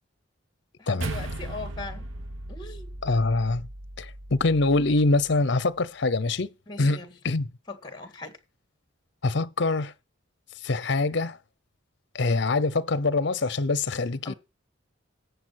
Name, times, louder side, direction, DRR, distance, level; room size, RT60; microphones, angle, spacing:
voice 1, 0.8-2.0 2.5-2.9 6.7-7.1 7.7-8.3 14.3-14.4, left 3 dB, 20° left, 1.9 m, -39 dB
sound 1, 1.0-5.6, right 1 dB, 70° right, 1.2 m, -38 dB
voice 2, 3.0-3.7 4.0-6.5 6.8-7.5 9.2-9.9 10.6-11.4 12.1-14.3, left 3 dB, 60° left, 0.7 m, -24 dB
14.0 x 8.1 x 4.7 m
head